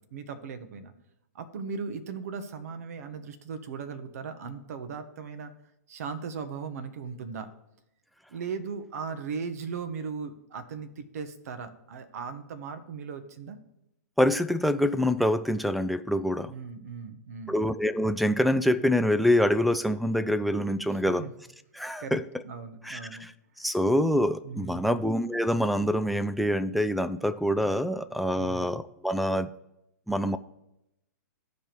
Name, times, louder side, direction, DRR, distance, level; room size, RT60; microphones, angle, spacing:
voice 1, 0.1-0.9 1.3-5.5 5.9-7.5 8.3-13.6 16.4-17.6 21.2-21.3 22.0-23.3 24.4-24.9 28.3-28.7, right 5 dB, 60° right, 9 dB, 1.1 m, -38 dB
voice 2, 14.2-16.5 17.5-21.3 21.7-22.2 22.8-23.3 23.6-29.5 30.1-30.4, equal, ahead, 10 dB, 0.3 m, -25 dB
15.5 x 5.3 x 3.0 m, 0.87 s
hypercardioid pair, 120°, 10 cm